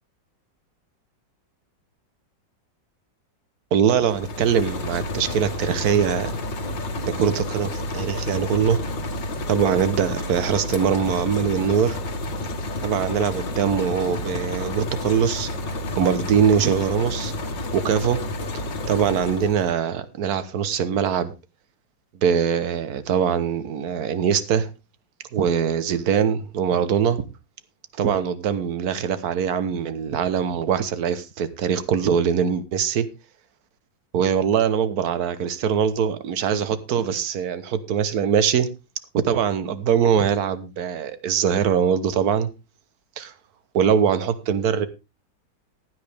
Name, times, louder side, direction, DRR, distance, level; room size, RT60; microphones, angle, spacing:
voice 1, 3.7-6.3 7.1-8.8 9.5-12.0 12.8-17.3 17.7-18.2 18.9-21.3 22.2-24.7 25.3-27.3 28.0-33.1 34.1-38.7 39.1-42.5 43.2-43.3 43.7-44.9, right 7 dB, 60° right, 1.5 m, -22 dB
sound 1, 4.0-19.8, left 1 dB, 75° left, 2.3 m, -30 dB
15.5 x 9.3 x 3.5 m
omnidirectional pair, 2.0 m